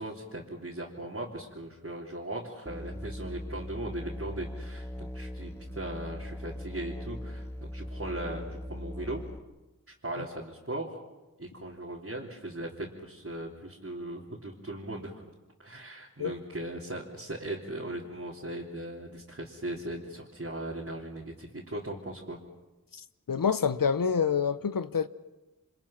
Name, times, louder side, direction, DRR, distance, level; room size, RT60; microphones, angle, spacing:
voice 1, 0.0-9.2 10.0-11.0 11.4-15.1 15.6-22.4, right 1 dB, 45° right, 3.7 m, -38 dB
Musical instrument, 2.7-9.4, equal, 10° left, 1.6 m, -40 dB
voice 2, 23.3-25.1, left 6 dB, 90° left, 0.8 m, -27 dB
28.0 x 26.0 x 5.9 m
wide cardioid pair, 40°, 33 cm